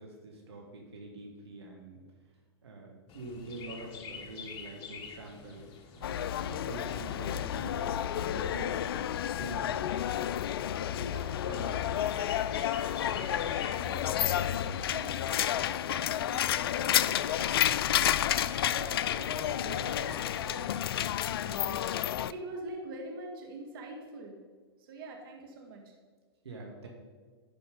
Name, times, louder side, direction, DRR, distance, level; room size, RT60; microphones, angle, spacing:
voice 1, 0.0-2.0 2.6-9.0 9.4-9.9 10.8-11.2 11.5-12.3 26.4-26.9, right 2 dB, 75° right, 0 dB, 1.8 m, -45 dB
Chirp tweet, 3.1-13.9, left 6 dB, 35° left, 1.1 m, -48 dB
sound 1, 6.0-22.3, left 11 dB, 65° left, 0.4 m, -30 dB
voice 2, 11.0-11.4 11.8-11.9 12.8-17.7 18.3-20.7 21.4-21.8 22.2-24.4 24.8-26.0, right 2 dB, 55° right, 1 dB, 1.8 m, -45 dB
11.5 x 5.1 x 5.3 m, 1.5 s
hypercardioid pair, 110°, 14 cm